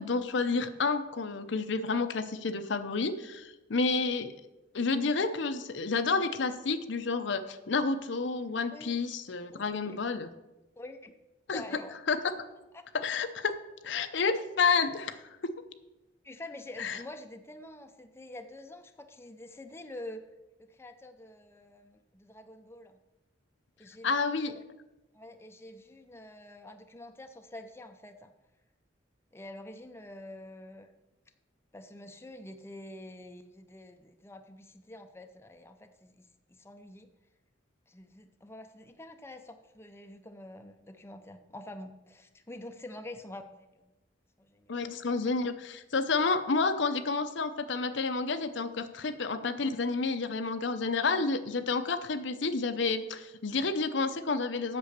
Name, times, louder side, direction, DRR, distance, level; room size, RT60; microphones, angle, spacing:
voice 1, 0.0-4.3 4.7-10.3 11.5-11.8 12.1-12.3 12.9-13.5 13.8-15.2 15.4-15.5 16.8-17.0 24.0-24.5 44.7-54.8, left 4 dB, 65° left, 10 dB, 0.6 m, -30 dB
voice 2, 9.5-10.0 10.8-11.1 11.5-12.0 12.7-12.8 16.2-20.2 20.6-23.0 23.8-24.6 25.1-28.3 29.3-30.9 31.7-37.1 37.9-43.9 44.4-44.8, left 1 dB, 15° left, 6 dB, 0.6 m, -47 dB
8.2 x 6.9 x 6.5 m, 1.0 s
head